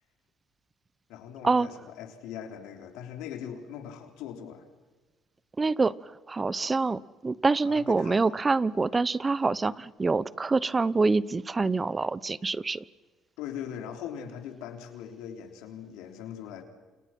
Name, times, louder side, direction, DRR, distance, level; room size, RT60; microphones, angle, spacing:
voice 1, 1.1-4.7 7.6-8.2 13.4-16.6, left 9 dB, 80° left, 6 dB, 3.8 m, -40 dB
voice 2, 5.6-12.8, right 3 dB, 25° right, 20 dB, 0.9 m, -26 dB
29.0 x 28.0 x 6.0 m, 1.3 s
supercardioid pair, 70°, 0 cm